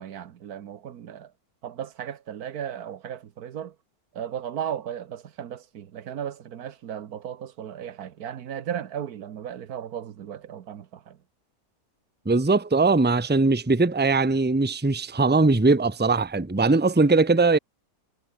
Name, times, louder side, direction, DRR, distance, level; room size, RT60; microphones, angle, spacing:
voice 1, 0.0-1.3 1.6-3.7 4.1-11.2, right 9 dB, 80° right, 1.5 m, -35 dB
voice 2, 12.2-17.6, right 3 dB, 10° right, 0.9 m, -20 dB
omnidirectional pair, 1.6 m